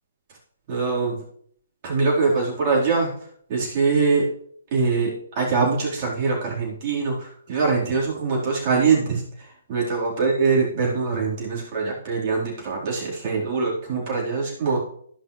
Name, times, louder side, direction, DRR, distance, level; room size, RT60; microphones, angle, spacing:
voice 1, 0.7-1.2 1.8-3.1 3.5-4.3 4.7-14.8, right 4 dB, 40° right, -3 dB, 4.4 m, -23 dB
15.5 x 6.0 x 3.4 m, 0.63 s
figure-of-eight pair, 130°, 0 cm